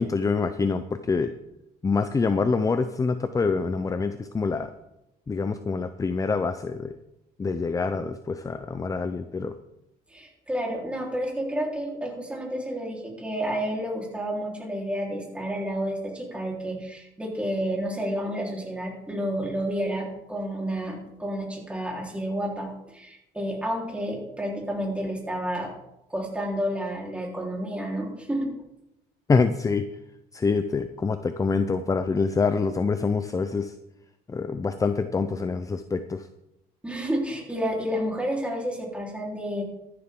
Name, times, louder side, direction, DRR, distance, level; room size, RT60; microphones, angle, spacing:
voice 1, 0.0-1.3 1.8-4.7 5.3-6.9 7.4-9.5 29.3-29.8 30.3-33.7 34.3-36.3, left 4 dB, 20° left, 11 dB, 0.6 m, -26 dB
voice 2, 10.1-25.7 26.1-28.5 36.8-39.6, equal, 5° right, -2 dB, 4.0 m, -30 dB
13.5 x 11.5 x 3.8 m, 0.88 s
cardioid pair, 110°, 17 cm